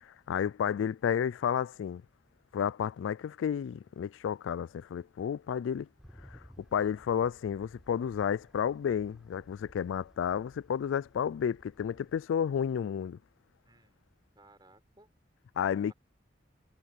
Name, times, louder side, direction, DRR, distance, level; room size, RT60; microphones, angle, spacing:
voice 1, 0.0-2.0 2.5-5.9 6.3-6.4 6.7-13.2 15.6-15.9, left 8 dB, 90° left, 0.3 m, -31 dB
sound 1, 6.0-12.3, equal, ahead, 5.5 m, -58 dB
voice 2, 13.6-14.1 14.4-15.1 15.7-15.9, right 2 dB, 25° right, 4.0 m, -61 dB
head